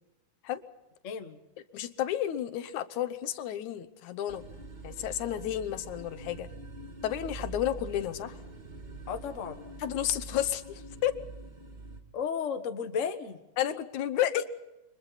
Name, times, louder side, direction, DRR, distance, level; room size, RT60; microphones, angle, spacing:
voice 1, 1.0-1.4 7.4-7.5 9.1-9.7 12.1-13.4, left 6 dB, 40° left, 7 dB, 1.1 m, -34 dB
voice 2, 1.7-4.4 4.8-6.5 7.0-8.4 9.8-11.2 13.6-14.4, left 11 dB, 80° left, 10 dB, 2.4 m, -31 dB
sound 1, 4.3-12.0, right 2 dB, 15° right, 1.9 m, -44 dB
29.0 x 24.0 x 4.1 m, 0.98 s
omnidirectional pair, 3.4 m